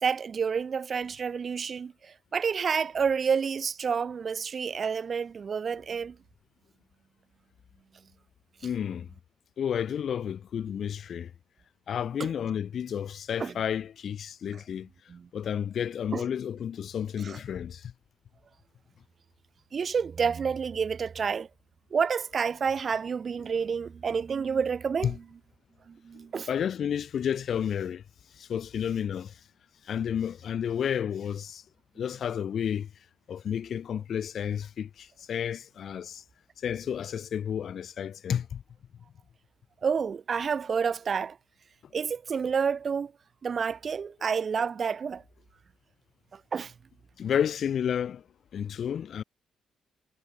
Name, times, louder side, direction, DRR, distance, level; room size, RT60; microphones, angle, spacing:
voice 1, 0.0-6.2 12.2-12.3 13.4-13.5 15.1-15.2 16.1-16.2 17.2-17.4 19.7-21.5 21.9-25.2 25.9-26.5 39.8-41.4 41.9-43.1 43.4-45.2 46.5-46.7, right 6 dB, 45° right, 4.2 m, -29 dB
voice 2, 8.6-9.1 9.6-11.3 11.9-14.9 15.3-17.9 25.0-25.2 26.5-28.0 28.3-29.4 29.8-31.6 32.0-32.9 33.3-36.2 36.6-38.6 47.2-48.2 48.5-49.2, left 8 dB, 60° left, 3.5 m, -31 dB
cardioid pair, 90°, 0 cm